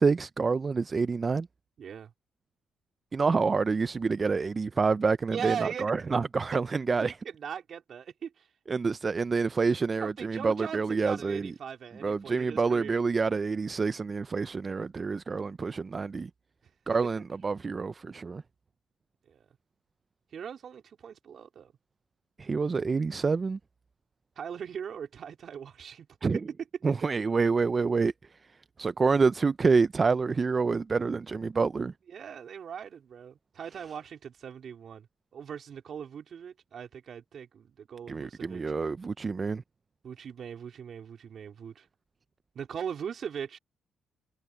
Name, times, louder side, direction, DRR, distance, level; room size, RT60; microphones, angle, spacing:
voice 1, 0.0-1.5 3.1-7.2 8.7-11.5 12.0-16.3 16.9-18.4 22.4-23.6 26.2-26.4 26.8-28.1 28.8-31.9 38.1-39.6, right 4 dB, 35° right, 0.4 m, -27 dB
voice 2, 1.8-2.1 5.3-5.9 7.0-8.5 10.0-13.0 19.3-19.5 20.3-21.7 24.4-26.1 32.1-35.1 35.3-38.6 40.0-41.9 42.5-43.6, right 7 dB, 55° right, 4.0 m, -40 dB
cardioid pair, 90°, 0 cm